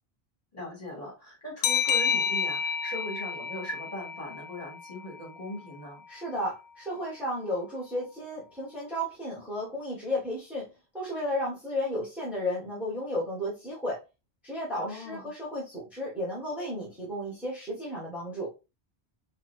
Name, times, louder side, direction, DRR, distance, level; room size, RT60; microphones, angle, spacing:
voice 1, 0.5-6.0 14.8-15.2, left 1 dB, 35° left, -5 dB, 2.5 m, -39 dB
sound 1, 1.6-5.0, left 6 dB, 90° left, 0.8 m, -29 dB
voice 2, 6.1-10.7 10.9-14.0 14.4-18.5, left 1 dB, ahead, -7 dB, 1.7 m, -33 dB
5.8 x 2.8 x 2.7 m, 0.27 s
omnidirectional pair, 1.0 m